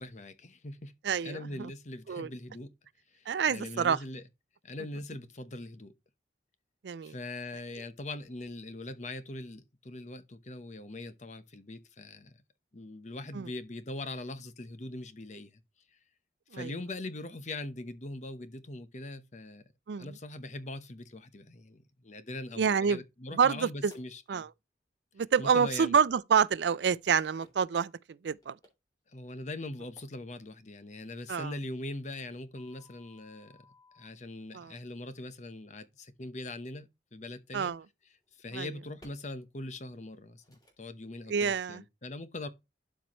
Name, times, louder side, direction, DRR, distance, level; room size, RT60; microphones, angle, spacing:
voice 1, 0.0-0.9 1.2-2.7 3.1-4.2 4.6-5.9 7.0-12.4 12.7-15.5 16.5-19.6 20.0-24.5 25.4-26.0 29.1-33.6 33.9-37.7 38.4-42.5, left 2 dB, 40° left, 0.9 m, -41 dB
voice 2, 1.0-1.7 2.1-2.3 3.3-4.0 6.8-7.1 13.3-13.5 16.5-16.7 19.9-20.1 22.6-23.0 23.3-23.9 24.3-24.5 25.2-27.9 28.2-28.6 31.3-31.5 34.5-34.7 37.5-37.8 38.5-38.7 41.3-41.8, right 6 dB, 75° right, 0.4 m, -27 dB
sound 1, 23.9-24.0 26.3-26.4 27.4-27.5 28.3-28.7 29.6-30.0 32.6-34.1 36.4-36.5 37.7-37.9 39.0-39.1 39.9-40.1 40.4-40.7, left 1 dB, 20° left, 2.9 m, -58 dB
12.0 x 4.6 x 3.0 m
head